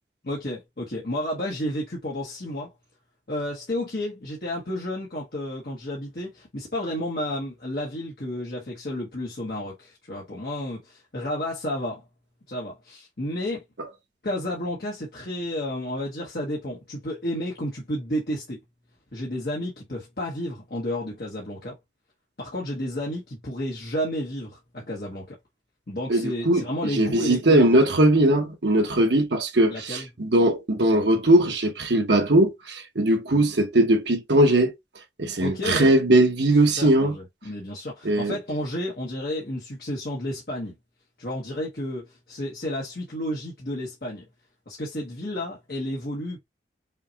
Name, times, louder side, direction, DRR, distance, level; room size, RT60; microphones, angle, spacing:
voice 1, 0.2-2.7 3.3-12.0 12.5-13.6 14.2-18.6 19.1-21.8 22.4-25.4 25.9-27.7 29.7-30.1 33.3-33.4 35.4-35.9 36.8-40.7 41.2-44.2 44.7-46.4, left 1 dB, 60° left, 1.2 m, -31 dB
voice 2, 26.1-26.6 26.9-34.7 35.2-37.2 38.0-38.4, right 1 dB, 80° right, 1.1 m, -20 dB
5.6 x 2.3 x 2.8 m
head